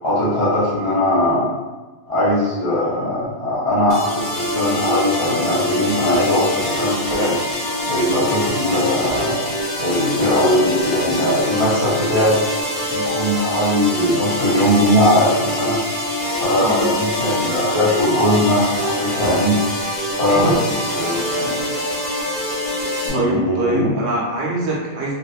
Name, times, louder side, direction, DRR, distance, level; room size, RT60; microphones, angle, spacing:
voice 1, 0.0-1.4 2.1-7.4 7.9-9.3 9.8-12.4 12.9-15.8 16.4-19.6 20.2-21.5 23.0-23.9, left 1 dB, 35° left, -10 dB, 0.6 m, -19 dB
sound 1, 3.9-23.1, left 1 dB, 55° left, 0.9 m, -24 dB
voice 2, 16.4-17.0 20.3-21.1 23.1-25.1, right 2 dB, 65° right, -3 dB, 0.8 m, -24 dB
2.7 x 2.0 x 2.3 m, 1.3 s
omnidirectional pair, 1.3 m